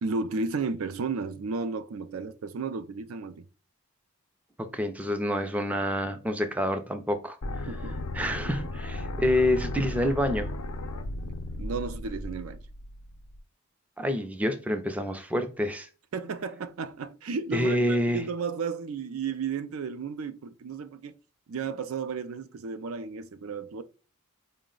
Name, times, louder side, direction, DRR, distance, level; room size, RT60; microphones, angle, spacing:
voice 1, 0.0-3.5 7.7-8.0 10.0-10.1 11.6-12.6 16.1-21.2 21.5-23.8, right 4 dB, 65° right, 0.4 m, -33 dB
voice 2, 4.6-7.4 8.1-10.5 14.0-15.9 17.5-18.2, left 1 dB, 5° right, 0.4 m, -27 dB
sound 1, 7.4-13.4, left 1 dB, 90° left, 0.6 m, -35 dB
4.7 x 2.1 x 3.7 m
head